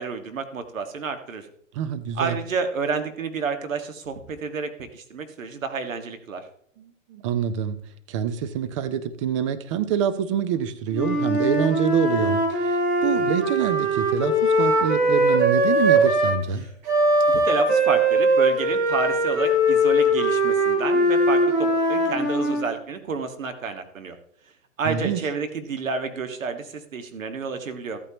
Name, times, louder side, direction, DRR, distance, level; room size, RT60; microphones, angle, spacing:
voice 1, 0.0-1.5 2.1-6.4 17.3-24.1 24.8-28.0, right 5 dB, 75° right, 7 dB, 1.7 m, -30 dB
voice 2, 1.7-2.4 6.8-7.8 8.1-16.7 24.8-25.2, right 8 dB, 25° right, 12 dB, 0.5 m, -26 dB
Wind instrument woodwind instrument, 10.9-16.4 16.8-22.7, right 1 dB, 40° right, 3.9 m, -21 dB
14.0 x 8.8 x 2.9 m, 0.63 s
hypercardioid pair, 135°, 40 cm